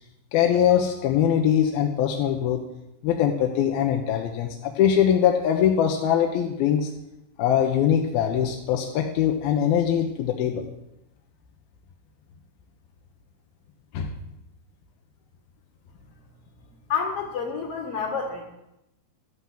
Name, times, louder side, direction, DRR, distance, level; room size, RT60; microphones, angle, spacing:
voice 1, 0.3-2.6 3.0-6.9 7.4-10.7 13.9-14.1, left 9 dB, 75° left, 2 dB, 2.8 m, -22 dB
voice 2, 16.9-18.4, left 6 dB, 45° left, 0 dB, 2.4 m, -28 dB
13.5 x 12.0 x 7.5 m, 0.90 s
omnidirectional pair, 4.6 m